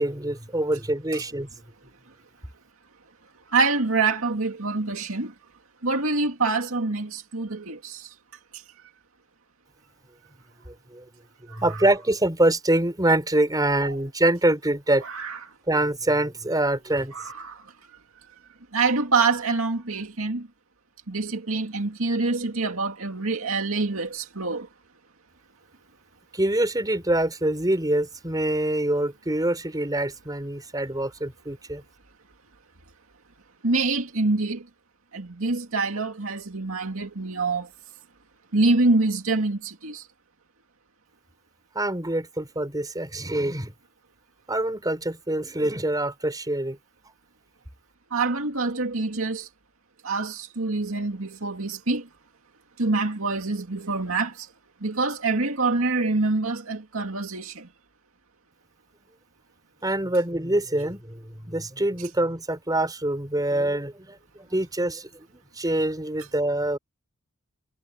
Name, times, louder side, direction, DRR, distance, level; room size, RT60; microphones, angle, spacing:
voice 1, 0.0-1.5 10.7-11.0 11.5-15.0 15.7-17.1 26.3-31.8 41.8-43.7 44.5-46.8 59.8-65.3 65.6-66.8, right 1 dB, 20° right, 5.4 m, -25 dB
voice 2, 3.5-5.3 5.8-8.1 11.5-11.6 13.8-14.0 15.0-15.4 17.1-17.6 18.7-20.5 21.1-24.7 33.6-34.6 35.1-37.7 38.5-40.0 48.1-49.5 50.0-52.0 52.8-54.5 54.8-57.7, right 3 dB, 70° right, 2.4 m, -25 dB
head